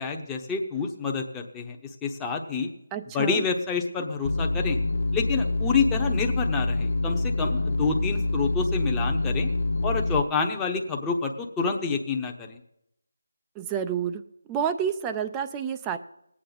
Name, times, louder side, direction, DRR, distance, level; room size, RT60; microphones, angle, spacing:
voice 1, 0.0-1.8 2.0-2.7 3.1-4.8 5.1-9.5 9.8-12.6, left 5 dB, 10° left, 1 dB, 0.9 m, -28 dB
voice 2, 2.9-3.5 13.6-14.2 14.5-16.0, right 8 dB, 10° right, 9 dB, 0.5 m, -29 dB
sound 1, 4.2-10.2, left 2 dB, 60° left, 0.6 m, -26 dB
19.5 x 8.6 x 4.0 m, 0.80 s
figure-of-eight pair, 165°, 0 cm